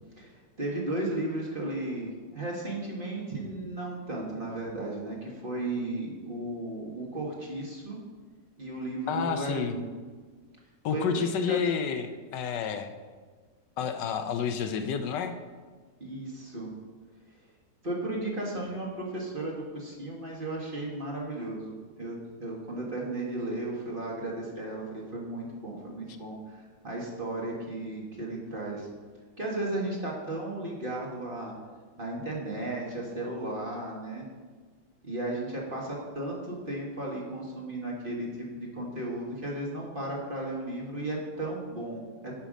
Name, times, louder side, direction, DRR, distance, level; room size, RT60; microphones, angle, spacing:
voice 1, 0.2-8.0 8.6-9.9 10.9-11.6 16.0-16.7 17.8-28.9 29.4-31.5 32.0-34.2 35.0-42.3, right 1 dB, 30° right, -2 dB, 1.6 m, -35 dB
voice 2, 9.1-9.7 10.8-12.9 13.8-15.4, left 7 dB, 75° left, 7 dB, 1.2 m, -30 dB
9.9 x 5.9 x 5.1 m, 1.5 s
omnidirectional pair, 2.0 m